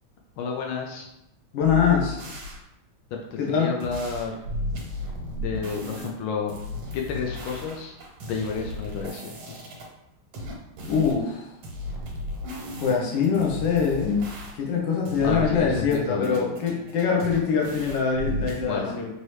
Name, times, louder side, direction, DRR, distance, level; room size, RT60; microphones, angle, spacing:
voice 1, 0.4-1.1 3.1-4.4 5.3-6.5 6.9-7.9 8.3-9.6 15.2-16.4 18.6-18.9, left 5 dB, 85° left, 0 dB, 1.4 m, -31 dB
voice 2, 1.5-2.2 3.4-3.7 10.9-11.4 12.8-14.3 14.5-19.1, left 6 dB, 65° left, -1 dB, 1.5 m, -23 dB
sound 1, 1.6-2.6 3.8-6.1 6.5-9.8 10.3-11.2 11.6-14.8 15.1-16.0 16.2-18.6, left 2 dB, 80° right, 1.8 m, -35 dB
4.7 x 2.7 x 3.1 m, 0.84 s
omnidirectional pair, 2.2 m